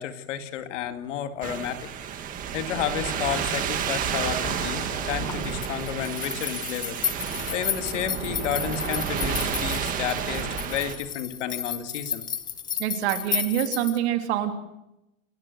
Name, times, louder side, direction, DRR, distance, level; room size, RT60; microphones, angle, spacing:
voice 1, 0.0-1.9 2.5-12.2, left 9 dB, 65° left, 8 dB, 2.4 m, -31 dB
sound 1, 1.4-10.9, right 8 dB, 20° right, 1.8 m, -31 dB
sound 2, 2.9-14.0, left 8 dB, 10° left, 0.7 m, -34 dB
voice 2, 12.8-14.5, right 11 dB, 55° right, 6 dB, 3.1 m, -26 dB
28.5 x 14.5 x 8.0 m, 0.89 s
supercardioid pair, 170°, 40 cm